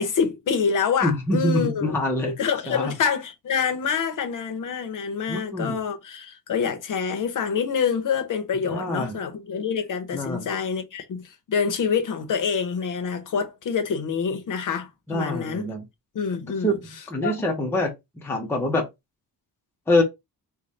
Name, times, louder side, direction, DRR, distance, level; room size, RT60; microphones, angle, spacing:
voice 1, 0.0-1.9 2.2-15.7 16.1-16.8 17.2-17.5, left 6 dB, 55° left, 0.8 m, -26 dB
voice 2, 1.0-2.3 2.7-2.9 5.3-5.8 8.7-9.2 10.1-10.5 15.1-15.8 16.6-16.8 17.1-18.9 19.9-20.0, left 1 dB, 5° left, 0.6 m, -25 dB
3.2 x 2.2 x 3.9 m
wide cardioid pair, 170°, 37 cm